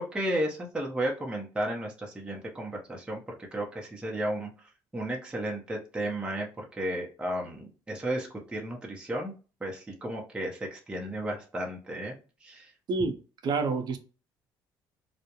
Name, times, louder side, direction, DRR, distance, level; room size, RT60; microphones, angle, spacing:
voice 1, 0.0-4.5 4.9-9.3 9.6-12.2 12.4-12.7, right 1 dB, 10° right, 0.6 m, -33 dB
voice 2, 13.4-14.0, right 4 dB, 55° right, 0.6 m, -27 dB
2.3 x 2.0 x 2.8 m
cardioid pair, 95°, 9 cm